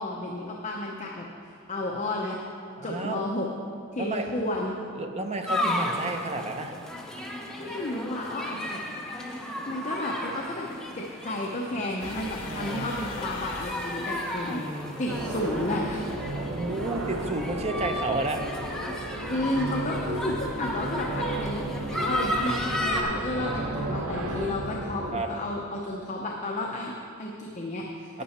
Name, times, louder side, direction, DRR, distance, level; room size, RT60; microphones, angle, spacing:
voice 1, 0.0-2.4 2.8-3.5 3.9-4.8 7.6-8.8 9.7-10.7 10.9-14.7 15.0-16.0 18.3-18.4 19.3-28.2, left 1 dB, 35° left, -1 dB, 0.8 m, -32 dB
voice 2, 2.8-3.2 4.0-4.3 5.0-6.7 12.5-12.9 14.5-15.0 16.4-18.4 23.3-23.7 25.1-25.3 28.1-28.2, right 2 dB, 30° right, 5 dB, 0.7 m, -32 dB
sound 1, 5.5-23.0, left 1 dB, 5° left, 0.8 m, -34 dB
sound 2, 12.0-15.9, left 4 dB, 90° left, 0.7 m, -43 dB
sound 3, 15.1-25.1, right 1 dB, 80° right, 1.1 m, -33 dB
11.5 x 8.9 x 4.3 m, 2.4 s
head